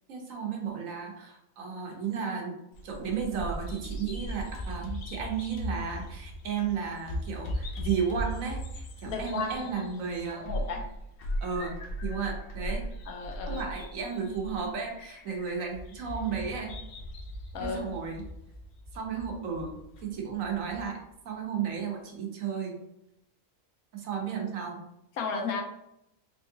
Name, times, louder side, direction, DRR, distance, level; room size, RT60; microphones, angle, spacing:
voice 1, 0.1-2.6 2.8-10.6 11.4-11.7 12.0-12.8 13.4-16.8 17.6-18.3 18.9-22.8 23.9-24.9, right 6 dB, 70° right, 1 dB, 1.1 m, -34 dB
Bird vocalization bird call bird song, 2.7-20.9, equal, 70° left, 0.5 m, -38 dB
voice 2, 9.1-9.7 10.3-10.8 13.1-13.6 17.5-17.8 25.2-25.6, left 4 dB, 90° left, 3 dB, 1.1 m, -33 dB
3.5 x 3.0 x 2.6 m, 0.83 s
omnidirectional pair, 1.5 m